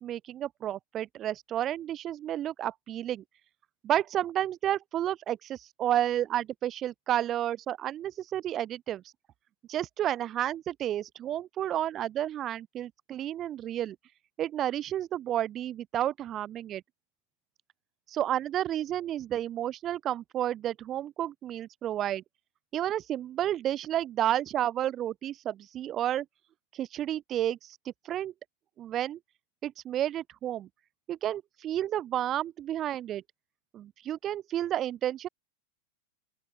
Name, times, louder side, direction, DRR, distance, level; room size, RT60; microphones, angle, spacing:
voice 1, 0.0-3.2 3.8-9.0 9.7-14.0 14.4-16.8 18.1-22.2 22.7-26.3 26.7-27.8 28.0-28.3 28.8-29.2 29.6-30.7 31.1-33.2 33.7-35.3, right 11 dB, 30° right, 0.6 m, -31 dB
open air
figure-of-eight pair, 90°, 0 cm